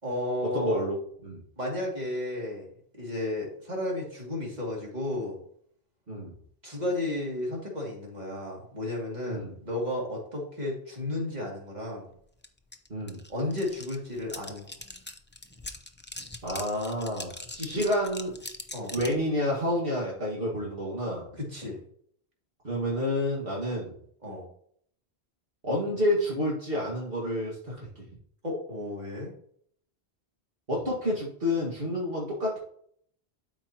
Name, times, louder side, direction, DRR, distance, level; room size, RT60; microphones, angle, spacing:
voice 1, 0.0-0.8 1.6-2.7 2.9-5.4 6.6-12.1 13.3-14.7 17.6-17.8 18.7-19.0 21.4-21.8 24.2-24.5 28.4-29.3, left 1 dB, 40° right, -2 dB, 2.6 m, -33 dB
voice 2, 0.5-1.4 6.1-6.3 9.3-9.5 12.9-13.2 16.4-18.3 18.9-21.3 22.6-23.9 25.6-27.9 30.7-32.6, left 1 dB, 60° right, -6 dB, 2.1 m, -29 dB
sound 1, 12.4-12.5 12.7-19.2, left 2 dB, 15° left, 0.5 m, -42 dB
12.0 x 5.0 x 2.9 m, 0.64 s
omnidirectional pair, 1.1 m